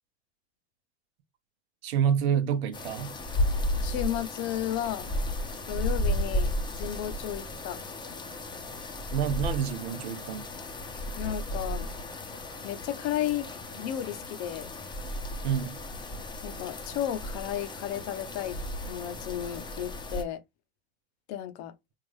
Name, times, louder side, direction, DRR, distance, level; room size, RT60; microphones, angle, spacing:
voice 1, 1.8-3.2 9.1-10.5 15.4-15.8, right 8 dB, 65° right, 0.8 m, -28 dB
sound 1, 2.7-20.2, left 1 dB, 15° left, 0.7 m, -34 dB
voice 2, 3.8-5.1 5.7-6.5 6.8-7.8 11.2-11.9 12.6-13.5 13.7-14.7 16.4-18.6 18.9-20.4 21.3-21.7, left 11 dB, 50° left, 0.7 m, -33 dB
3.6 x 2.5 x 3.1 m
hypercardioid pair, 95°, 34 cm